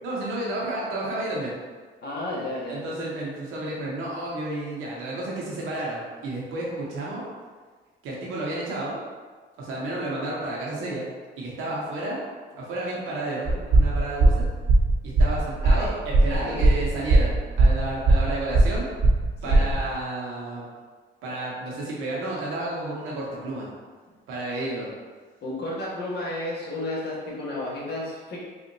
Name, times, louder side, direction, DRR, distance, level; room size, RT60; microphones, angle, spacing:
voice 1, 0.0-1.5 2.7-7.2 8.0-9.0 9.6-11.0 11.4-14.5 15.0-18.9 19.4-20.6 21.2-23.7 24.3-24.9, right 1 dB, 85° right, -5 dB, 1.0 m, -31 dB
voice 2, 2.0-2.8 15.6-15.9 16.3-16.6 19.4-19.6 25.4-28.4, left 1 dB, 55° left, -6 dB, 1.3 m, -32 dB
sound 1, 13.4-19.8, right 2 dB, 60° right, 1.0 m, -19 dB
4.1 x 2.5 x 2.7 m, 1.4 s
cardioid pair, 90°, 20 cm